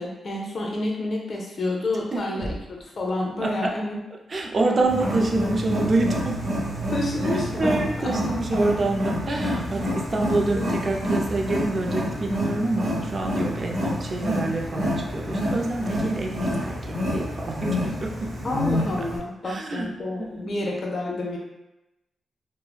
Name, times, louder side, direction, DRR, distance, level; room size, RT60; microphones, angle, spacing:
voice 1, 0.0-4.0 4.6-5.0 6.9-7.8 8.3-8.6 10.5-10.7 18.4-21.4, left 2 dB, 55° left, -1 dB, 0.6 m, -29 dB
voice 2, 2.1-2.5 3.4-3.7 4.3-6.6 7.3-18.4 19.5-19.9 20.2-20.5, right 2 dB, 45° right, 1 dB, 0.4 m, -27 dB
Wild animals, 4.9-19.2, equal, 70° right, 0.8 m, -28 dB
3.1 x 2.1 x 2.3 m, 0.92 s
cardioid pair, 70°, 0 cm